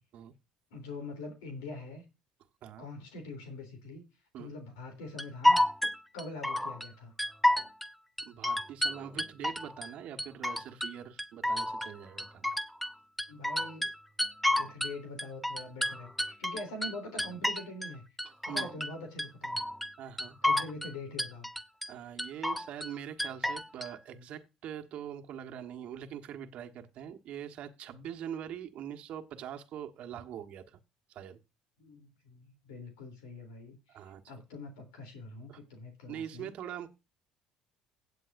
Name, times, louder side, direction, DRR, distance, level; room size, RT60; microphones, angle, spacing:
voice 1, 0.7-2.0 2.8-4.0 4.4-5.6 6.1-7.1 13.3-13.9 14.6-18.0 18.4-19.6 20.4-21.5 31.8-34.0 34.3-36.5, left 2 dB, 90° left, 3.3 m, -44 dB
sound 1, 5.2-6.9 7.2-7.9 8.2-9.9 10.2-10.9 11.2-12.9 13.2-14.9 15.2-17.9 18.2-18.9 19.2-19.9 20.2-20.9 21.2-21.9 22.2-22.9 23.2-23.9, left 1 dB, ahead, 0.7 m, -30 dB
voice 2, 8.2-12.5 18.2-18.8 20.0-20.4 21.9-30.8 31.1-31.4 33.9-34.2 35.5-35.6 36.1-36.9, right 9 dB, 60° right, 1.3 m, -43 dB
16.5 x 7.7 x 2.6 m
supercardioid pair, 80°, 2 cm